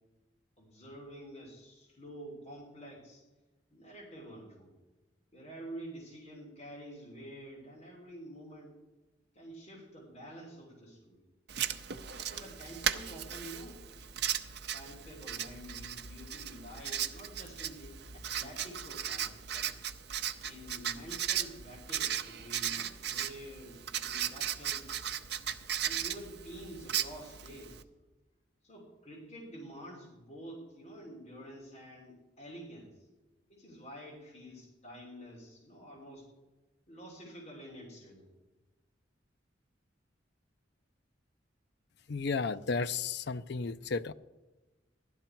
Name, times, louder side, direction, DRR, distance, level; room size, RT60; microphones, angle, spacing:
voice 1, 0.6-3.2 3.7-4.8 5.3-8.8 9.3-11.2 12.3-13.8 14.7-19.7 20.4-25.0 25.8-27.8 28.6-33.1 33.5-36.3 36.9-38.3, equal, 35° left, 3.1 m, -48 dB
Writing, 11.5-27.8, right 9 dB, 60° right, 0.7 m, -37 dB
voice 2, 42.1-44.1, left 4 dB, 60° left, 0.5 m, -33 dB
16.0 x 12.0 x 4.5 m
head